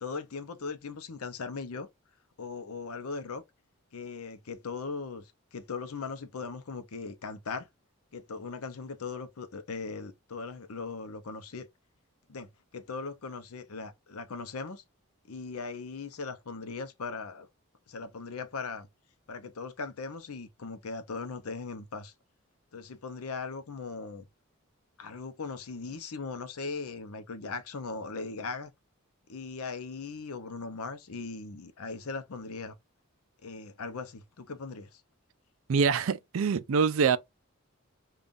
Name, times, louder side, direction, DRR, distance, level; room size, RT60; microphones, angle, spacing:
voice 1, 0.0-1.9 2.4-3.4 3.9-7.7 8.1-11.7 12.3-14.8 15.3-17.5 17.9-18.9 19.3-22.1 22.7-24.3 25.0-28.7 29.3-32.7 33.4-35.0, left 4 dB, 85° left, 0.6 m, -39 dB
voice 2, 35.7-37.2, right 5 dB, 70° right, 0.4 m, -25 dB
5.2 x 2.4 x 2.5 m
head